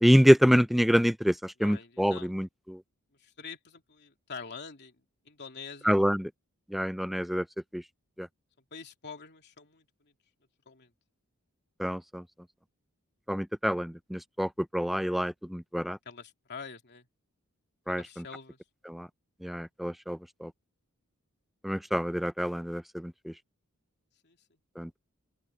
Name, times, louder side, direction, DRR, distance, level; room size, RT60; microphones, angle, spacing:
voice 1, 0.0-2.8 5.8-6.3 6.7-7.4 7.7-7.8 8.2-8.3 11.8-12.2 13.3-16.0 17.9-18.2 18.9-19.1 19.4-20.5 21.6-23.3 24.8-25.0, equal, ahead, 0.4 m, -26 dB
voice 2, 1.6-2.3 3.2-6.0 8.7-10.1 10.7-10.9 16.0-17.1 17.9-18.6 24.2-24.6, left 5 dB, 50° left, 3.0 m, -46 dB
open air
head